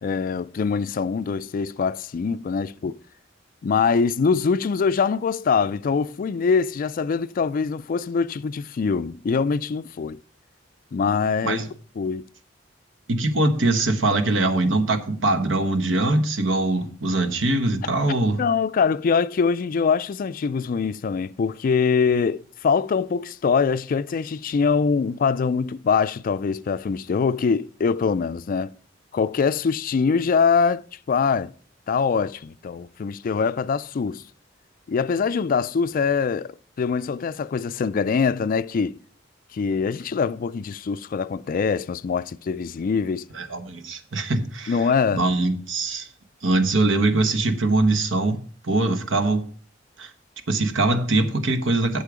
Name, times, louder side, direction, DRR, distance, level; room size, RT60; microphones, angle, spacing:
voice 1, 0.0-3.0 3.6-10.2 10.9-11.6 12.0-12.2 18.4-28.7 29.1-30.8 31.1-31.5 31.9-34.2 34.9-39.0 39.5-43.3 44.7-45.2, left 5 dB, 45° left, 0.3 m, -23 dB
voice 2, 13.1-18.4 43.3-44.8 45.1-46.1 46.4-49.4 50.0-50.1 50.5-52.0, right 2 dB, 85° right, 1.1 m, -22 dB
8.3 x 7.5 x 4.9 m
head